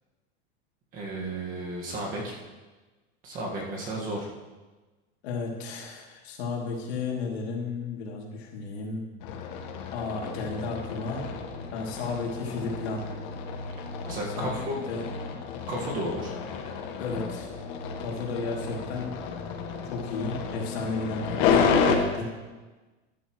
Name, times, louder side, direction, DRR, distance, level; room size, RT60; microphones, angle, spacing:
voice 1, 0.9-2.4 3.2-4.3 14.0-14.8 15.7-16.3, right 1 dB, 25° right, -1 dB, 1.8 m, -33 dB
voice 2, 5.2-9.0 9.9-11.3 11.7-13.0 14.4-15.1 17.0-17.5 18.0-19.1 19.8-22.3, left 4 dB, 70° left, -2 dB, 3.0 m, -33 dB
sound 1, 9.2-22.0, left 6 dB, 45° left, 1.3 m, -31 dB
14.0 x 11.5 x 3.2 m, 1.2 s
supercardioid pair, 180°, 32 cm